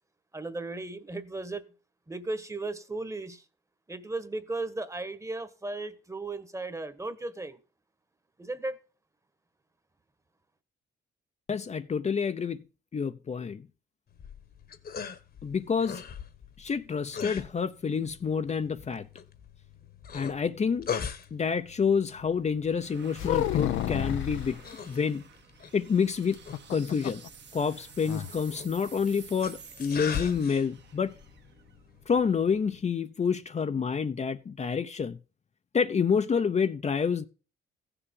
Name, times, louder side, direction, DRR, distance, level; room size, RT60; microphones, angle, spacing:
voice 1, 0.3-1.7 2.1-3.4 3.9-7.6 8.4-8.8, right 2 dB, 15° right, 1.4 m, -36 dB
voice 2, 11.5-12.6 12.9-13.6 15.4-16.0 16.6-19.1 20.1-20.9 21.3-24.6 24.9-25.3 25.7-26.4 26.7-27.2 27.5-31.1 32.1-35.2 35.7-37.3, left 6 dB, 35° left, 0.8 m, -28 dB
sound 1, 14.1-32.8, left 7 dB, 50° left, 1.5 m, -42 dB
sound 2, 21.3-32.5, right 7 dB, 60° right, 2.0 m, -52 dB
sound 3, 23.2-24.6 26.3-27.3 27.6-27.7 28.1-28.3, left 12 dB, 90° left, 0.9 m, -30 dB
15.0 x 7.0 x 5.4 m
cardioid pair, 90°, 20 cm